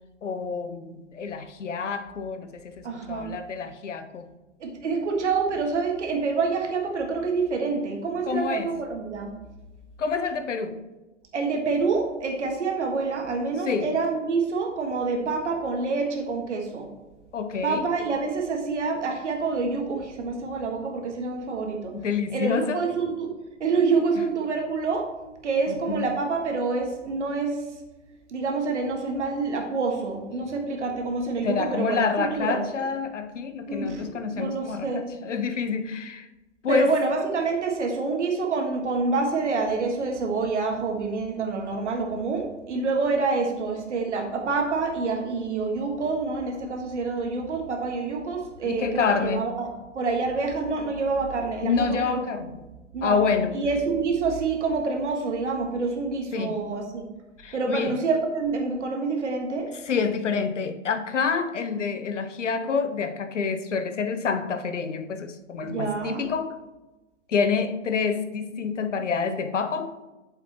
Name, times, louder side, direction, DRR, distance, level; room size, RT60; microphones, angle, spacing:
voice 1, 0.2-2.7 3.1-4.3 8.3-8.7 10.0-10.8 13.7-13.9 17.3-17.9 21.9-22.8 25.7-26.0 31.4-36.3 36.6-36.9 48.6-49.4 51.6-52.5 53.0-53.5 56.3-56.5 57.4-58.0 59.9-66.6 67.3-69.9, left 5 dB, 75° left, 9 dB, 0.8 m, -27 dB
voice 2, 2.8-3.3 4.6-9.3 11.3-16.9 17.6-22.0 22.3-23.3 23.6-25.0 25.4-27.7 28.3-32.9 33.7-35.0 36.7-52.2 52.9-53.2 53.5-57.0 57.5-59.7 65.6-66.3, right 4 dB, 70° right, 2 dB, 1.7 m, -27 dB
8.3 x 6.9 x 3.0 m, 1.1 s
figure-of-eight pair, 110°, 37 cm